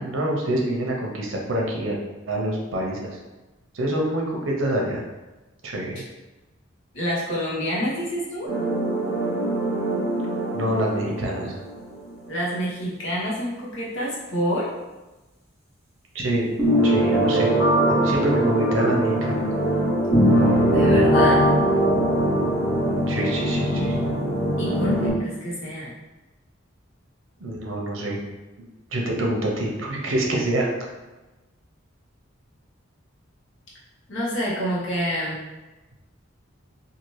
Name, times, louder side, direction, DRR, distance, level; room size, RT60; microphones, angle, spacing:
voice 1, 0.0-2.0 2.3-3.2 3.7-5.0 5.6-6.0 10.5-11.6 16.1-16.5 16.8-17.5 17.8-19.5 23.1-23.9 27.4-28.2 28.9-30.7, right 1 dB, 75° right, -1 dB, 0.7 m, -26 dB
voice 2, 6.9-8.5 12.3-14.7 20.6-21.5 24.6-25.9 34.1-35.4, equal, 70° left, -6 dB, 1.0 m, -28 dB
sound 1, 8.5-11.8 12.1-12.2 16.6-25.1, equal, 15° right, 0.9 m, -21 dB
2.8 x 2.5 x 3.1 m, 1.1 s
head